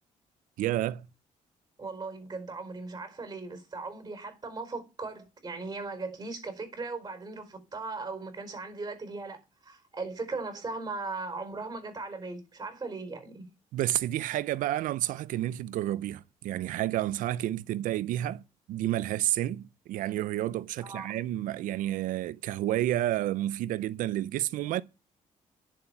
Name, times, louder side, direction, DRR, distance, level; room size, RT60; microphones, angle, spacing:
voice 1, 0.6-1.1 13.7-18.4 18.7-24.8, right 13 dB, 85° right, 0.6 m, -30 dB
voice 2, 1.8-13.5 20.8-21.2, right 3 dB, 30° right, 4.8 m, -38 dB
11.0 x 7.3 x 5.9 m
cardioid pair, 80°, 14 cm